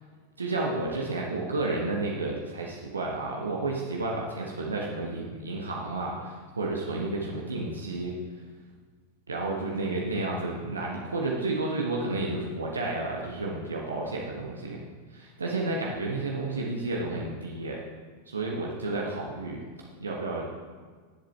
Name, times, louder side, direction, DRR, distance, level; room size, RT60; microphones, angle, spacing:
voice 1, 0.4-8.1 9.3-14.8 15.1-17.8 18.3-19.6 20.0-20.5, right 2 dB, 75° right, -2 dB, 1.3 m, -31 dB
18.0 x 7.7 x 3.4 m, 1.5 s
figure-of-eight pair, 90°, 0 cm